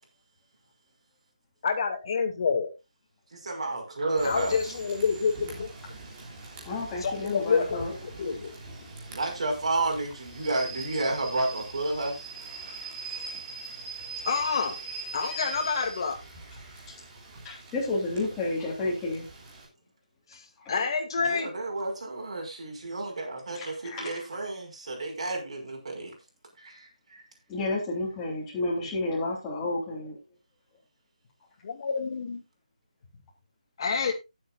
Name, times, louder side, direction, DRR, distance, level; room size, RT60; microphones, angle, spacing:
voice 1, 1.6-2.7 4.2-5.7 7.0-7.8 8.2-8.5 14.2-14.8 15.1-16.2 20.3-20.4 20.7-21.5 31.6-32.4 33.8-34.1, left 5 dB, 35° left, 5 dB, 2.5 m, -28 dB
voice 2, 3.3-4.6 9.1-12.3 21.2-26.1 26.6-27.2, right 2 dB, 50° right, 2 dB, 5.9 m, -31 dB
Rain / Train, 4.2-19.6, right 3 dB, 15° right, 3.3 m, -42 dB
voice 3, 6.6-7.9 17.4-19.3 20.6-20.9 23.5-24.4 27.5-30.2, left 2 dB, 10° left, -5 dB, 3.2 m, -31 dB
18.5 x 7.8 x 2.5 m, 0.24 s
figure-of-eight pair, 165°, 4 cm